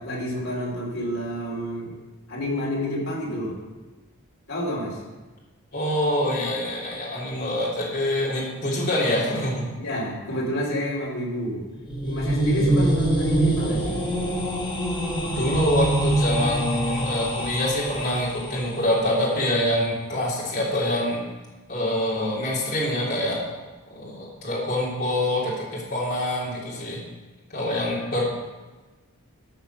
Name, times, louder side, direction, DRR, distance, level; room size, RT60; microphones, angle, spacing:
voice 1, 0.0-1.9 2.3-3.6 4.5-5.0 9.8-11.6 12.0-14.0, equal, 65° left, -4 dB, 4.0 m, -29 dB
voice 2, 5.7-9.7 15.4-21.2 21.7-23.4 23.9-27.0 27.5-28.2, left 1 dB, 45° left, -6 dB, 3.5 m, -25 dB
sound 1, 11.7-18.7, right 1 dB, 20° left, 2.1 m, -24 dB
13.5 x 6.0 x 6.4 m, 1.2 s
head